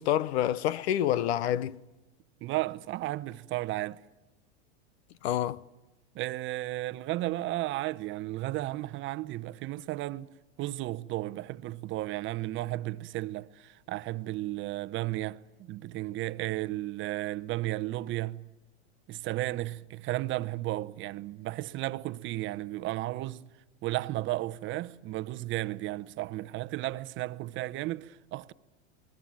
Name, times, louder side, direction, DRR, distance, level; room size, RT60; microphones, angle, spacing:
voice 1, 0.0-1.8 5.2-5.6, left 11 dB, 70° left, 1.0 m, -27 dB
voice 2, 2.4-4.0 6.1-10.3 10.6-18.4 19.1-23.5 23.8-28.5, right 17 dB, 35° right, 0.8 m, -34 dB
29.0 x 21.0 x 7.5 m
supercardioid pair, 125°, 34 cm